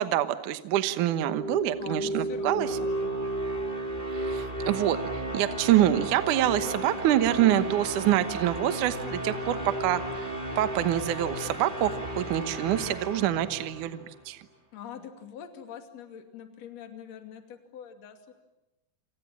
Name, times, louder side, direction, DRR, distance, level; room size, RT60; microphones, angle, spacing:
voice 1, 0.0-2.7 4.1-10.3 10.6-14.4, right 12 dB, 75° right, 11 dB, 1.9 m, -26 dB
sound 1, 1.0-14.1, right 1 dB, 15° right, 2.0 m, -34 dB
voice 2, 1.8-3.4 14.7-18.3, left 8 dB, 40° left, 5 dB, 3.2 m, -44 dB
Guitar, 7.3-10.6 11.0-11.1, left 5 dB, 70° left, 4.9 m, -51 dB
28.5 x 27.5 x 7.3 m, 0.97 s
omnidirectional pair, 5.4 m